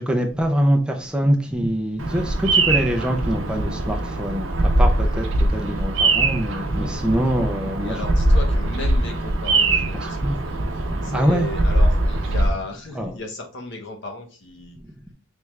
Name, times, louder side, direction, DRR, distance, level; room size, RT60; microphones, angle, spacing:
voice 1, 0.0-8.1 9.9-10.4 10.9-11.5 12.9-13.2 14.8-14.9, equal, 5° right, 0.4 m, -24 dB
Bird vocalization bird call bird song, 2.0-12.5, right 2 dB, 65° right, 0.7 m, -21 dB
voice 2, 7.8-10.6 11.0-14.8, left 2 dB, 60° left, 0.9 m, -35 dB
3.5 x 3.2 x 3.2 m
head